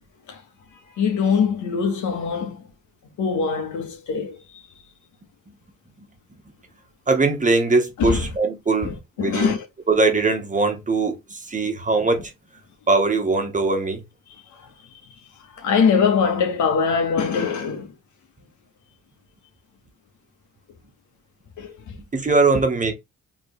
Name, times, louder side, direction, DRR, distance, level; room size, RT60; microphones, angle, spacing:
voice 1, 0.9-2.6 3.2-4.4 8.0-8.3 8.8-9.7 15.6-17.9 21.6-21.9, left 6 dB, 75° left, 1.5 m, -22 dB
voice 2, 7.1-8.9 9.2-9.5 9.9-12.3 12.9-14.0 22.1-22.9, right 3 dB, 25° right, 1.4 m, -21 dB
4.5 x 3.4 x 3.3 m
cardioid pair, 90°, 30 cm